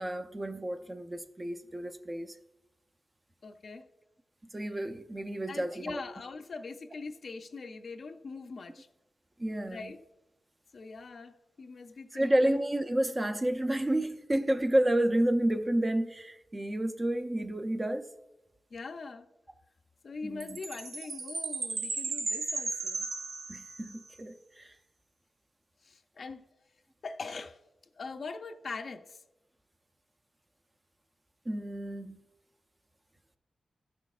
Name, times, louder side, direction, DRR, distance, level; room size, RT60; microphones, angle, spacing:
voice 1, 0.0-2.3 4.5-6.0 9.4-9.9 12.1-18.1 20.2-20.6 23.5-24.7 31.5-32.2, right 1 dB, 20° right, 0.5 m, -30 dB
voice 2, 3.4-3.8 4.6-4.8 5.5-8.9 9.7-10.0 10.7-12.5 18.7-19.3 20.0-23.1 25.8-26.5 27.0-27.6 27.9-29.2, left 4 dB, 50° left, 0.5 m, -42 dB
Chime, 20.4-24.1, right 4 dB, 85° right, 0.8 m, -36 dB
15.5 x 6.1 x 2.4 m
wide cardioid pair, 150°, 0 cm